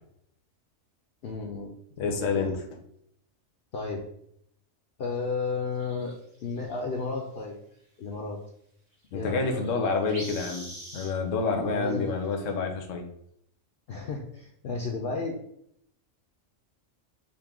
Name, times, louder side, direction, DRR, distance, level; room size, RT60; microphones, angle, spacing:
voice 1, 1.2-1.7 2.1-2.5 3.7-4.0 5.0-6.1 6.4-7.6 8.0-8.4 9.1-9.6 11.5-12.2 13.9-15.4, left 4 dB, 55° left, 1 dB, 0.7 m, -33 dB
voice 2, 2.0-2.6 9.1-10.7 10.9-13.0, left 4 dB, 75° left, 3 dB, 1.1 m, -28 dB
sound 1, 5.7-6.8 9.3-9.4 9.5-11.1 12.1-12.3 12.5-12.6, equal, 55° right, 2.2 m, -42 dB
5.3 x 2.5 x 3.6 m, 0.73 s
omnidirectional pair, 1.3 m